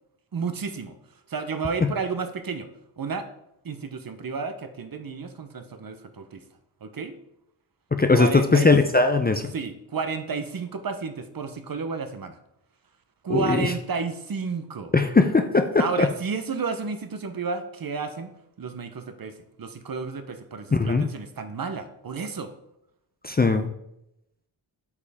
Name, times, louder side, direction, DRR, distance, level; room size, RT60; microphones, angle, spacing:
voice 1, 0.3-2.7 3.0-3.3 3.6-6.4 6.8-7.1 8.1-8.7 9.5-12.4 13.2-14.9 15.8-18.3 18.6-22.5, right 5 dB, 45° right, 9 dB, 0.8 m, -31 dB
voice 2, 7.9-9.5 13.3-13.7 14.9-16.1 20.7-21.1 23.2-23.7, left 3 dB, 20° left, 7 dB, 0.5 m, -20 dB
8.2 x 5.4 x 3.5 m, 0.80 s
wide cardioid pair, 90°, 47 cm